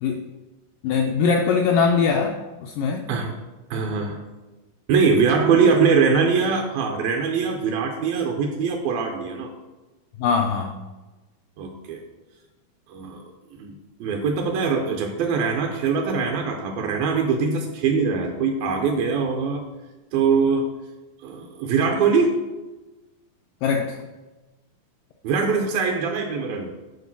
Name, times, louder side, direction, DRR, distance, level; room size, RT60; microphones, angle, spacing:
voice 1, 0.8-3.1 10.2-10.8 23.6-24.0, left 5 dB, 80° left, 2 dB, 1.9 m, -22 dB
voice 2, 3.7-4.2 4.9-9.5 11.6-12.0 12.9-13.3 13.6-13.7 14.0-19.6 20.1-20.7 21.2-22.4 25.2-26.7, right 5 dB, 75° right, 2 dB, 2.4 m, -22 dB
10.5 x 3.8 x 5.9 m, 1.1 s
omnidirectional pair, 4.4 m